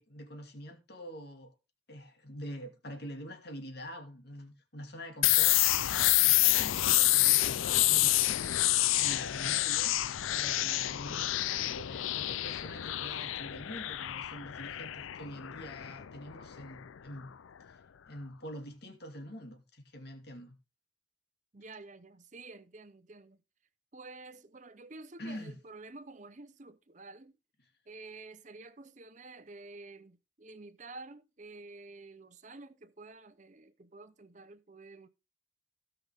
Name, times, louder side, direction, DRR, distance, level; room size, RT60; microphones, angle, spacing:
voice 1, 0.0-1.5 1.9-8.6 8.9-9.9 10.3-17.3 17.6-17.8 18.1-20.6 25.2-25.5, equal, 55° left, 2.5 m, -45 dB
sound 1, 5.2-16.9, left 15 dB, 85° left, 0.4 m, -28 dB
voice 2, 21.5-23.4 23.9-27.3 27.9-35.1, right 3 dB, 40° right, 0.8 m, -50 dB
17.0 x 5.8 x 3.5 m
head